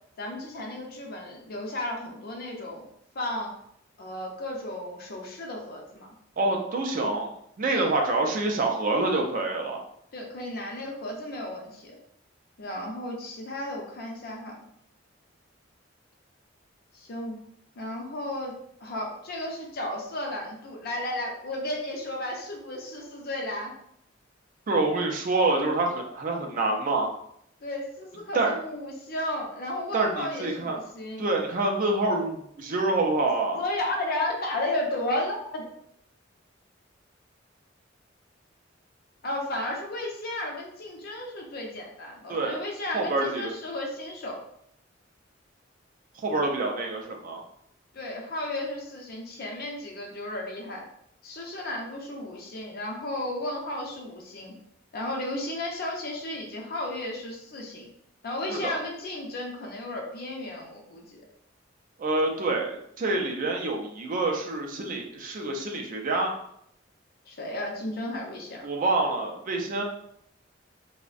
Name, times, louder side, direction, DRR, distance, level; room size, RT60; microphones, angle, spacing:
voice 1, 0.2-2.9 3.1-3.5 4.0-6.1 7.7-7.9 10.1-12.0 12.6-14.6 16.9-17.4 17.8-18.6 18.8-23.7 27.6-31.3 33.5-35.7 39.2-44.4 47.9-50.8 51.2-54.5 54.9-57.9 58.2-61.2 67.3-68.6, left 1 dB, 50° left, 0 dB, 0.5 m, -34 dB
voice 2, 6.4-9.8 24.7-27.1 28.3-28.5 29.9-30.8 31.2-33.6 42.3-42.6 42.9-43.5 46.1-47.4 58.5-58.8 62.0-66.3 68.6-69.8, right 2 dB, 45° right, 1 dB, 0.4 m, -27 dB
2.5 x 2.0 x 2.4 m, 0.71 s
head